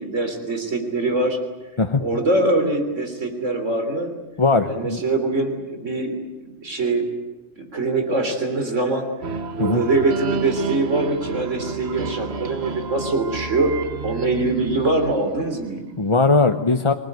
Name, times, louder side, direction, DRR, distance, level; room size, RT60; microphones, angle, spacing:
voice 1, 0.0-1.4 2.0-4.1 4.7-6.2 6.6-7.1 7.6-13.7 14.0-15.9, right 2 dB, 85° right, 5 dB, 3.7 m, -23 dB
voice 2, 4.4-5.0 9.6-9.8 16.0-16.9, left 3 dB, 25° left, 6 dB, 0.9 m, -19 dB
sound 1, 9.2-15.8, right 4 dB, 60° right, 1.5 m, -31 dB
26.5 x 19.0 x 9.3 m, 1.1 s
omnidirectional pair, 1.2 m